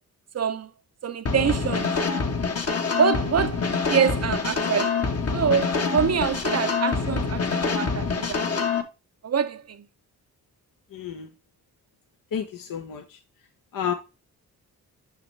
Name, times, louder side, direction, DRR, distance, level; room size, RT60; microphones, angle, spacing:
voice 1, 0.3-0.7 1.0-2.0 3.0-5.0 5.3-8.7 9.2-9.8, right 7 dB, 40° right, 0.7 m, -25 dB
sound 1, 1.3-8.8, left 5 dB, 40° left, 1.2 m, -26 dB
voice 2, 10.9-11.3 12.3-13.2 13.7-13.9, left 8 dB, 60° left, 0.9 m, -30 dB
6.0 x 5.8 x 3.3 m
supercardioid pair, 45°, 38 cm